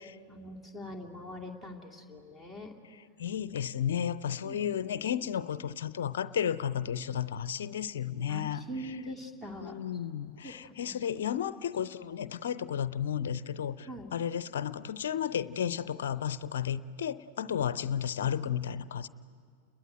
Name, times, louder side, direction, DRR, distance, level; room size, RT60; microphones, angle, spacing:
voice 1, 0.3-2.7 4.4-4.7 8.3-9.8 10.4-10.9 13.9-14.1, equal, 5° right, 4 dB, 2.8 m, -43 dB
voice 2, 3.2-8.9 9.6-19.1, left 9 dB, 60° left, 17 dB, 0.6 m, -33 dB
30.0 x 21.5 x 9.3 m, 2.2 s
figure-of-eight pair, 90°, 0 cm